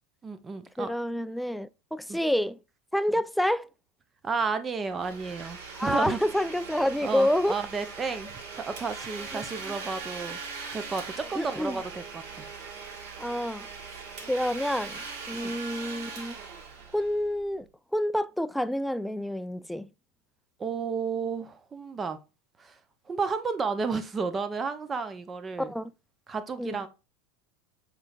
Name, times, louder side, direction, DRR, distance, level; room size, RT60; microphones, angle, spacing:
voice 1, 0.2-0.9 2.1-2.2 4.2-6.2 7.0-10.4 10.7-12.5 15.3-15.5 20.6-22.2 22.6-22.8 23.1-25.7 26.3-26.9, right 5 dB, 25° right, 0.7 m, -32 dB
voice 2, 0.8-2.6 2.9-3.7 5.8-7.6 9.3-9.8 11.3-11.8 13.2-13.7 14.3-15.0 15.3-16.4 16.9-17.7 17.9-19.9 25.6-25.9 26.6-26.8, left 1 dB, ahead, 0.3 m, -28 dB
Domestic sounds home sounds, 4.9-17.5, right 5 dB, 55° right, 1.4 m, -41 dB
6.1 x 3.2 x 2.5 m
figure-of-eight pair, 80°, 0 cm